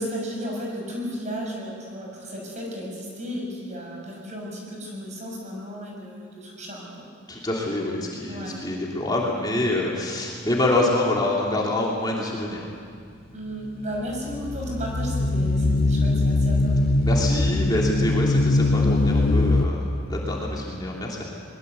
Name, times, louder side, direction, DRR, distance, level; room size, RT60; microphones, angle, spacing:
voice 1, 0.0-7.1 8.3-8.6 13.3-16.7, equal, 35° right, -1 dB, 6.8 m, -34 dB
voice 2, 7.3-12.6 17.0-21.2, left 1 dB, 20° left, -3 dB, 3.1 m, -26 dB
sound 1, 14.0-19.7, left 2 dB, 50° left, 1.0 m, -21 dB
22.5 x 21.5 x 8.2 m, 2.2 s
head